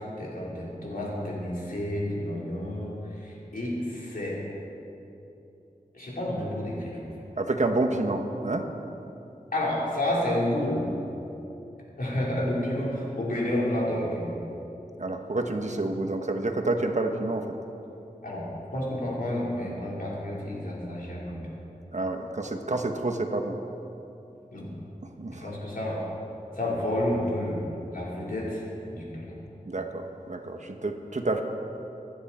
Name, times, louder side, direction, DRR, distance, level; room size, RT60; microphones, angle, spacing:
voice 1, 0.2-4.4 5.9-7.0 9.5-10.9 12.0-14.3 18.2-18.4 18.7-21.4 24.5-24.7 25.4-26.1 26.6-28.6 28.9-29.4, left 1 dB, 75° left, -5 dB, 4.2 m, -30 dB
voice 2, 7.4-8.7 15.0-17.5 21.9-23.6 25.0-25.5 29.7-31.4, right 2 dB, 55° right, 4 dB, 1.3 m, -29 dB
25.5 x 9.8 x 4.4 m, 2.9 s
wide cardioid pair, 65°, 15 cm